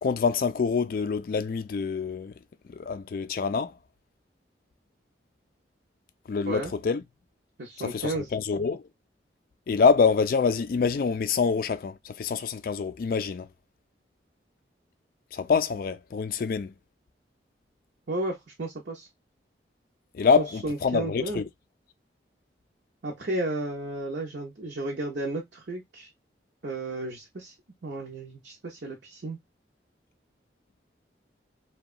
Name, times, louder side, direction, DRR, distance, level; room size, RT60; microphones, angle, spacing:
voice 1, 0.0-2.3 2.7-3.7 6.3-7.0 7.8-8.9 9.7-13.5 15.3-16.7 20.1-21.5, left 5 dB, 50° left, 0.3 m, -26 dB
voice 2, 7.6-8.3 18.1-19.1 20.4-21.4 23.0-26.1 26.6-27.5 27.8-29.4, right 2 dB, 70° right, 0.7 m, -33 dB
2.8 x 2.2 x 2.3 m
head